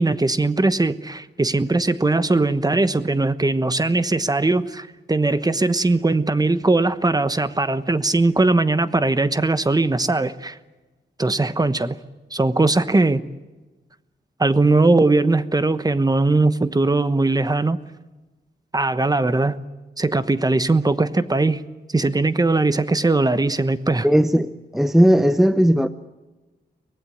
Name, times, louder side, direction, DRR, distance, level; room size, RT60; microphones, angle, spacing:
voice 1, 0.0-10.6 11.2-12.0 12.3-13.2 14.4-17.8 18.7-19.6 20.0-21.6 21.9-24.1, right 2 dB, 20° right, 1.1 m, -20 dB
voice 2, 24.0-25.9, equal, ahead, 0.7 m, -17 dB
24.0 x 18.5 x 9.4 m
wide cardioid pair, 95°, 18 cm